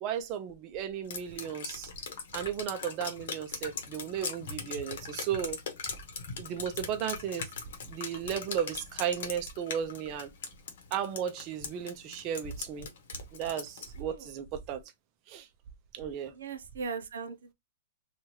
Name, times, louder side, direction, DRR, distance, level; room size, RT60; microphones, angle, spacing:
voice 1, 0.0-1.9 2.3-5.6 6.4-7.5 7.9-10.3 10.9-12.9 13.3-14.8 15.3-15.5 15.9-16.3, right 9 dB, 35° right, 0.5 m, -35 dB
Drip, 1.1-14.0, left 5 dB, 70° left, 0.9 m, -40 dB
voice 2, 14.0-14.3 16.3-17.5, right 5 dB, 90° right, 0.6 m, -39 dB
2.9 x 2.3 x 3.0 m
hypercardioid pair, 155°, 0 cm